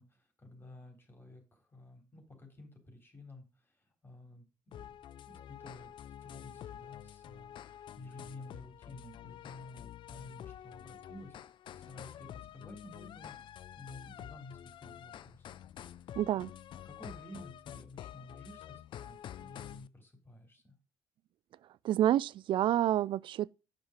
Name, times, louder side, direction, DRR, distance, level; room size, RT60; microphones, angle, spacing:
voice 1, 0.0-4.9 5.3-11.4 11.7-15.6 16.8-20.7, left 2 dB, 20° left, 3.6 m, -52 dB
sound 1, 4.7-19.9, left 11 dB, 55° left, 0.5 m, -48 dB
voice 2, 16.1-16.5 21.8-23.5, right 12 dB, 55° right, 0.4 m, -28 dB
9.0 x 5.5 x 5.1 m
hypercardioid pair, 55°, 10 cm